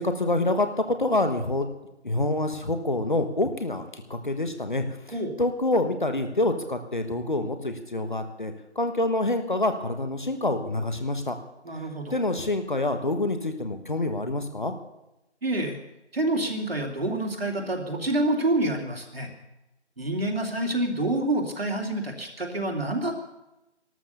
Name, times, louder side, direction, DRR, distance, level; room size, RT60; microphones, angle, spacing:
voice 1, 0.0-1.7 2.0-4.8 5.4-11.4 12.1-14.7, left 2 dB, 45° left, 7 dB, 1.3 m, -26 dB
voice 2, 11.6-12.2 15.4-15.8 16.1-19.3 20.0-23.2, right 1 dB, 55° right, 2 dB, 2.8 m, -27 dB
14.5 x 13.0 x 6.8 m, 0.91 s
figure-of-eight pair, 165°, 35 cm